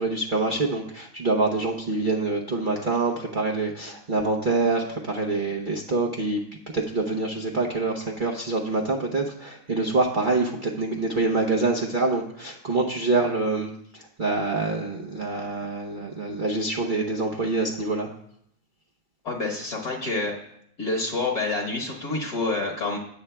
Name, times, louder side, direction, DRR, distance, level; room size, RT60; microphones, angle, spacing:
voice 1, 0.0-6.4 6.7-18.1, right 3 dB, 55° right, -1 dB, 0.5 m, -26 dB
voice 2, 19.2-20.4 20.8-23.0, left 3 dB, 55° left, -1 dB, 1.9 m, -27 dB
17.5 x 7.2 x 2.3 m, 0.72 s
omnidirectional pair, 2.2 m